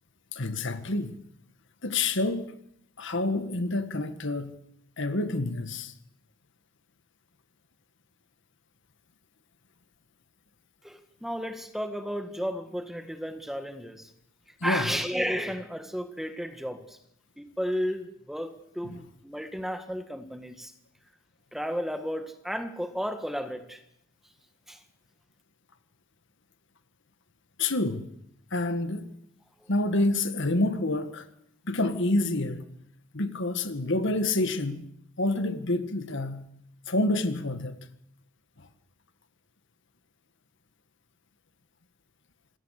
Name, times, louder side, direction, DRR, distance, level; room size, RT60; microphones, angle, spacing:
voice 1, 0.3-1.2 1.8-2.5 3.0-4.5 5.0-5.9 14.6-14.9 18.8-19.0 27.6-28.1 28.5-29.1 29.7-31.3 31.7-32.7 33.1-34.8 35.2-36.4 36.9-37.9 38.6-38.7, left 2 dB, 60° left, 1.8 m, -28 dB
voice 2, 10.8-14.1 14.6-17.0 17.4-20.7 21.5-23.8 24.7-24.8 29.6-29.7, equal, ahead, 1.8 m, -33 dB
26.5 x 21.0 x 6.7 m
head